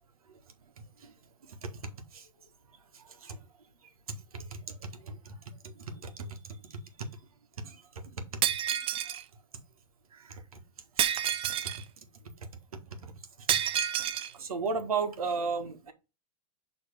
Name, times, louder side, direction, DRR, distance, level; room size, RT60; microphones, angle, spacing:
voice 1, 2.9-3.4 4.1-5.5 5.8-7.1 7.6-7.8 8.1-8.4 10.1-10.4 11.0-11.1 13.0-13.1 14.3-15.9, right 4 dB, 85° right, 1.5 m, -36 dB
Shatter, 8.4-9.2 11.0-11.8 13.5-14.3, right 10 dB, 30° right, 0.5 m, -29 dB
6.8 x 3.4 x 4.7 m
hypercardioid pair, 110°, 18 cm